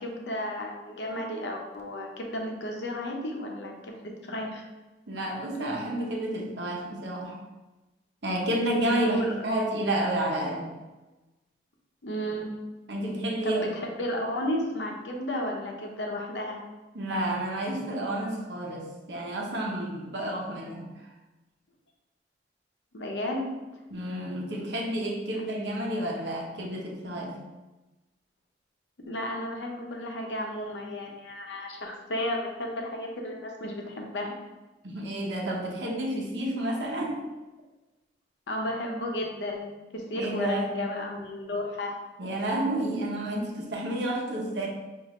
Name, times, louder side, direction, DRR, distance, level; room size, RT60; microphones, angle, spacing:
voice 1, 0.0-4.6 9.0-9.5 12.0-12.5 13.4-16.6 22.9-23.6 29.1-34.3 38.5-41.9, left 1 dB, 85° left, 1 dB, 0.7 m, -33 dB
voice 2, 5.1-7.4 8.2-10.7 12.9-13.6 16.9-21.1 23.9-27.4 34.8-37.3 40.1-40.7 42.2-44.7, right 1 dB, 80° right, -1 dB, 0.9 m, -30 dB
4.9 x 2.6 x 3.1 m, 1.1 s
head